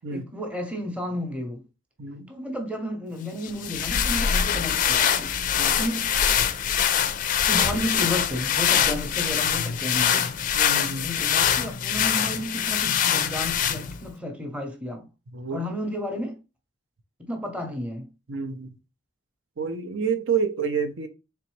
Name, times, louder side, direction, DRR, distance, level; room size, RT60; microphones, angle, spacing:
voice 1, 0.1-1.6 2.3-5.3 5.8-6.1 7.4-10.3 11.0-15.1 15.5-16.4 17.2-18.1, left 1 dB, 5° right, 0.8 m, -32 dB
voice 2, 2.0-2.3 5.6-5.8 10.5-11.1 15.3-15.6 18.3-18.7 19.6-21.1, right 6 dB, 75° right, 0.7 m, -28 dB
sound 1, 3.4-14.1, left 8 dB, 40° left, 0.4 m, -24 dB
3.9 x 3.4 x 3.1 m
head